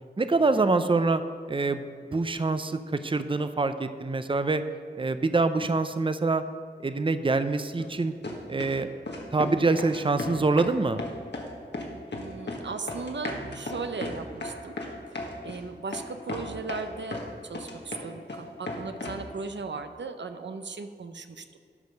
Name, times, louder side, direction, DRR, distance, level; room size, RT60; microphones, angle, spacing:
voice 1, 0.2-1.2 1.5-1.8 2.1-4.6 5.0-6.4 6.8-8.1 8.5-8.9 9.3-11.0, right 3 dB, 30° right, 11 dB, 0.5 m, -25 dB
sound 1, 7.8-7.9 8.2-8.8 9.1-9.5 9.8-10.7 11.0-11.5 11.7-12.6 12.9-15.6 15.9-16.0 16.3-17.3 17.5-18.4 18.7-19.2, left 2 dB, 75° left, 1.5 m, -35 dB
voice 2, 12.1-14.7 15.4-21.6, right 4 dB, 85° right, 8 dB, 0.6 m, -37 dB
12.0 x 5.3 x 6.5 m, 2.1 s
wide cardioid pair, 45°, 18 cm